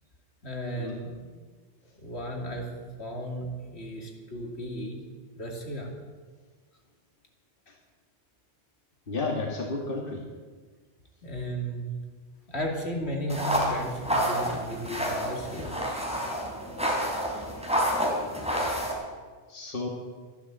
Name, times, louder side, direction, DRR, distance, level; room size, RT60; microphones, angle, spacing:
voice 1, 0.4-1.2 2.0-2.7 3.0-5.0 5.4-5.9 11.2-11.9 12.5-15.7, equal, 70° left, 0 dB, 2.8 m, -34 dB
voice 2, 9.1-10.2 19.5-19.9, left 3 dB, 50° left, 0 dB, 2.0 m, -32 dB
sound 1, 13.3-18.9, equal, 5° right, 3.4 m, -29 dB
13.5 x 11.5 x 7.8 m, 1.4 s
omnidirectional pair, 1.2 m